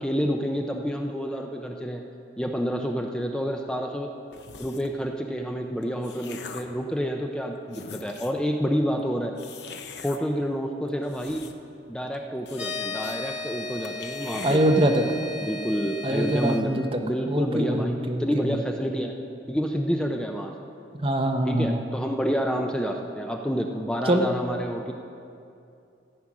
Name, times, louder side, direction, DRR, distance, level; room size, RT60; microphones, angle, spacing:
voice 1, 0.0-2.0 2.4-4.1 4.6-9.3 10.0-11.5 11.9-14.6 15.4-19.2 19.5-20.5 21.4-24.9, equal, 5° left, 2 dB, 0.5 m, -28 dB
sound 1, 4.3-5.0 5.7-6.8 7.4-7.5 7.7-8.4 9.4-10.2 10.9-11.8 12.1-12.2 12.5-13.2 13.5-13.6 13.8-14.6, left 5 dB, 65° left, 0.8 m, -42 dB
sound 2, 12.5-16.6, left 3 dB, 35° left, 1.6 m, -35 dB
voice 2, 14.4-15.0 16.0-17.0 17.3-18.6 21.0-21.8 24.0-24.3, right 1 dB, 30° right, 4 dB, 0.9 m, -23 dB
14.5 x 8.9 x 6.1 m, 2.6 s
head